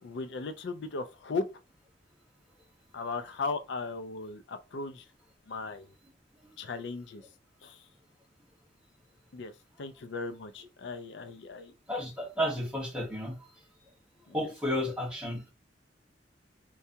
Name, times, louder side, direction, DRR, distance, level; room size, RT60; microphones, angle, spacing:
voice 1, 0.0-1.4 2.9-5.1 5.5-5.9 6.6-7.3 7.6-7.9 9.3-11.7 14.3-14.4, left 3 dB, 75° left, 0.4 m, -37 dB
voice 2, 11.9-13.3 14.3-15.5, equal, 5° right, 1.5 m, -32 dB
4.5 x 2.3 x 2.7 m
head